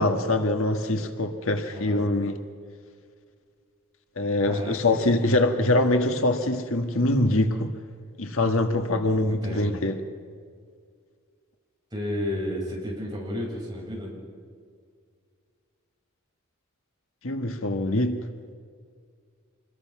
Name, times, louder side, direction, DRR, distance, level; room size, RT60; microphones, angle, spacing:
voice 1, 0.0-2.4 4.2-7.7 8.2-10.0 17.2-18.2, left 2 dB, 65° left, 6 dB, 1.6 m, -24 dB
voice 2, 1.7-2.1 4.4-4.8 9.0-9.7 11.9-14.1, left 1 dB, 20° right, -3 dB, 7.2 m, -32 dB
27.0 x 21.5 x 6.0 m, 2.1 s
head